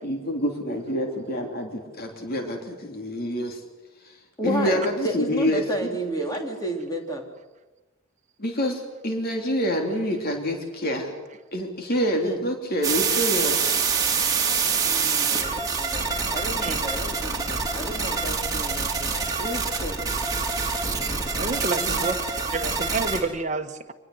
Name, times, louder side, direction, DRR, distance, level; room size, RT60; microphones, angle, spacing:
voice 1, 0.0-3.6 4.4-5.6 8.4-11.1 11.5-13.6 21.8-22.0, equal, 50° left, 3 dB, 3.3 m, -27 dB
voice 2, 4.4-7.2 12.2-12.4 14.8-19.9, equal, 20° left, 2 dB, 3.5 m, -32 dB
sound 1, 12.8-23.2, right 5 dB, 20° right, 3.6 m, -26 dB
voice 3, 21.4-22.2 22.5-23.9, right 3 dB, 35° right, 5 dB, 1.6 m, -29 dB
25.5 x 20.5 x 8.0 m, 1.1 s
head